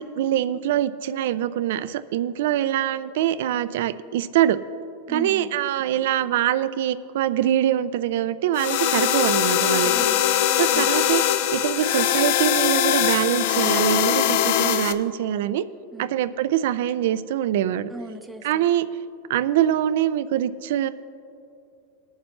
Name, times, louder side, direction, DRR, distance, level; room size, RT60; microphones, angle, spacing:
voice 1, 0.0-4.6 5.1-9.9 10.5-11.2 11.5-15.6 16.0-17.9 18.4-18.9 19.3-20.9, right 11 dB, 70° right, 15 dB, 0.4 m, -23 dB
voice 2, 5.1-5.5 9.8-10.9 15.9-16.1 17.9-18.7, right 2 dB, 5° right, 6 dB, 0.5 m, -39 dB
sound 1, 8.6-14.9, left 11 dB, 55° left, 0.4 m, -21 dB
21.5 x 7.3 x 3.2 m, 2.7 s
supercardioid pair, 160°, 0 cm